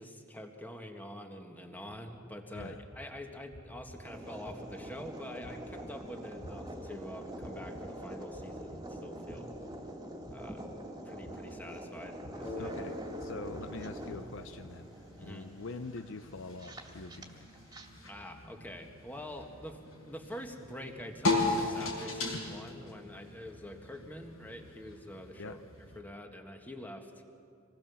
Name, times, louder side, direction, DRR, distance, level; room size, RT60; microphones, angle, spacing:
voice 1, 0.0-9.5 10.3-12.7 15.2-15.5 18.1-27.1, equal, 10° left, 4 dB, 1.7 m, -46 dB
sound 1, 1.9-2.0 2.6-3.0 3.5-4.0 4.4-4.9 5.4-5.8 6.4-6.8 7.4-7.8 8.3-8.8 9.3-9.7 10.2-10.7 11.2-11.6 12.2-12.6 13.2-13.6 14.1-14.5, equal, 25° left, 2.5 m, -50 dB
sound 2, 4.0-17.9, right 1 dB, 20° right, 2.3 m, -45 dB
sound 3, 12.4-26.0, left 3 dB, 85° left, 4.7 m, -39 dB
voice 2, 12.6-14.9 15.2-17.6 25.4-25.6, left 3 dB, 65° left, 10 dB, 0.7 m, -44 dB
26.0 x 20.0 x 7.2 m, 2.5 s
head